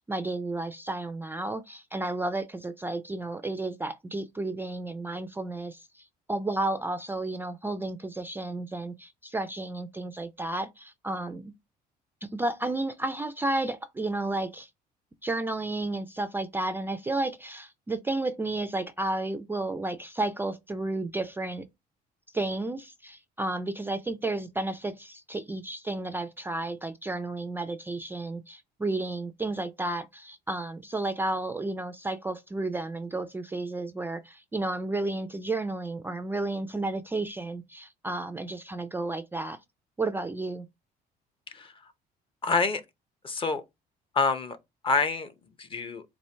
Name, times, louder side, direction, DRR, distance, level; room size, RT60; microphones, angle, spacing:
voice 1, 0.0-11.5 12.2-14.7 15.2-21.7 22.3-39.6 40.0-40.7, right 2 dB, 10° right, 0.3 m, -32 dB
voice 2, 42.4-42.8 43.2-43.6 44.1-44.6 44.8-45.3 45.6-46.0, left 4 dB, 30° left, 0.7 m, -27 dB
4.4 x 2.4 x 3.2 m
cardioid pair, 110°, 17 cm